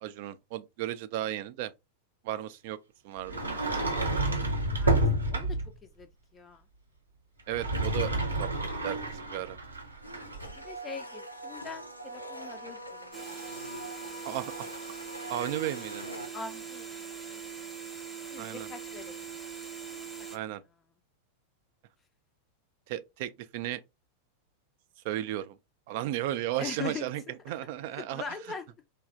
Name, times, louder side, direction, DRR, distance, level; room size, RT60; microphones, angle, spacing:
voice 1, 0.0-1.7 2.2-2.8 3.0-3.4 7.5-8.5 8.8-9.6 14.2-14.8 15.3-16.1 18.4-18.7 20.3-20.6 22.9-23.8 25.0-25.6 25.9-28.2, right 13 dB, 50° right, 0.3 m, -34 dB
Sliding door, 3.3-5.8 7.4-10.6, right 1 dB, 80° right, 0.6 m, -29 dB
voice 2, 3.6-4.2 4.8-5.0 5.3-6.1 6.3-6.6 10.6-13.1 14.6-14.7 16.3-16.9 17.3-17.4 18.3-19.1 19.9-20.3 26.6-27.1 28.0-28.6, left 5 dB, 20° left, 0.4 m, -42 dB
Domestic sounds home sounds, 10.0-16.3, right 1 dB, 90° left, 0.5 m, -43 dB
sound 1, 13.1-20.4, right 7 dB, 5° right, 0.8 m, -42 dB
3.1 x 2.4 x 2.3 m
figure-of-eight pair, 90°, 0 cm